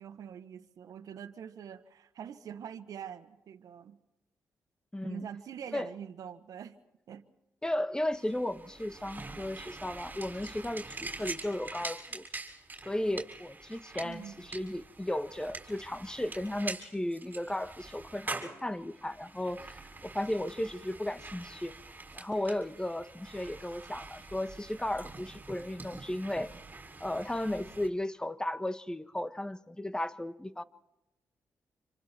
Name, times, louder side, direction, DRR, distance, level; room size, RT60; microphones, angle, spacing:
voice 1, 0.0-4.0 5.0-6.8 7.1-7.2 14.0-14.5, right 8 dB, 75° right, 8 dB, 1.5 m, -44 dB
voice 2, 4.9-5.3 5.7-5.9 7.6-12.2 12.8-21.7 22.1-26.5 27.0-30.6, left 1 dB, 10° left, 11 dB, 1.6 m, -35 dB
sound 1, 8.1-27.9, right 3 dB, 30° right, 6.5 m, -45 dB
27.5 x 26.5 x 4.6 m, 0.91 s
cardioid pair, 60°, 6 cm